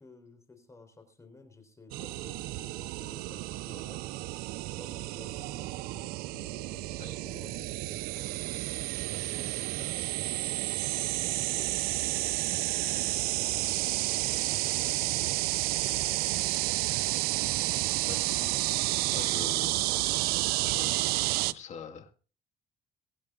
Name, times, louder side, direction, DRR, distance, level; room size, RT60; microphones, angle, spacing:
voice 1, 0.0-4.0 4.7-8.4 9.2-10.7 11.2-16.9, left 3 dB, 20° left, 7 dB, 3.9 m, -54 dB
sound 1, 1.9-21.5, right 18 dB, 85° right, 0.5 m, -31 dB
voice 2, 18.1-18.5 19.1-19.8 20.6-22.1, left 6 dB, 50° left, 5 dB, 2.2 m, -44 dB
23.5 x 8.3 x 3.7 m, 0.38 s
cardioid pair, 120°, 15 cm